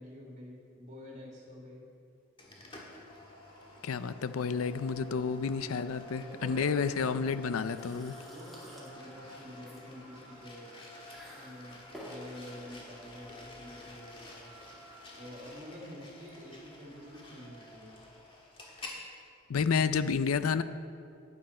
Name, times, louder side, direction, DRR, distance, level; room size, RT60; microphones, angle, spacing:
voice 1, 0.0-1.9 6.2-7.3 8.2-10.8 11.3-14.5 15.2-18.0, left 1 dB, 35° right, -2 dB, 2.3 m, -48 dB
sound 1, 2.4-19.0, left 2 dB, 25° left, 1.6 m, -50 dB
voice 2, 3.8-8.2 19.5-20.6, left 5 dB, 80° left, 13 dB, 0.5 m, -30 dB
sound 2, 7.0-17.4, equal, ahead, 2.2 m, -54 dB
11.5 x 9.8 x 4.3 m, 2.4 s
head